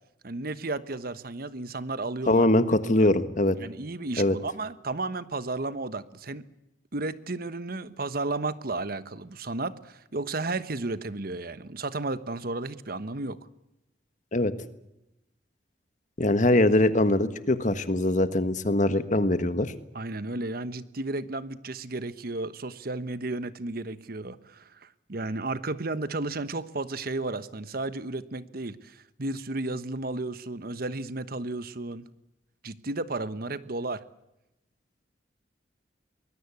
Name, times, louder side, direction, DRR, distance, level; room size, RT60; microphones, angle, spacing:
voice 1, 0.2-2.5 2.9-3.1 3.6-6.4 6.9-13.4 19.9-32.0 32.6-34.0, right 2 dB, 55° right, 13 dB, 1.2 m, -33 dB
voice 2, 2.3-3.6 4.2-4.4 14.3-14.5 16.2-19.7, left 1 dB, 45° left, 11 dB, 1.6 m, -22 dB
24.0 x 21.0 x 8.5 m, 0.88 s
head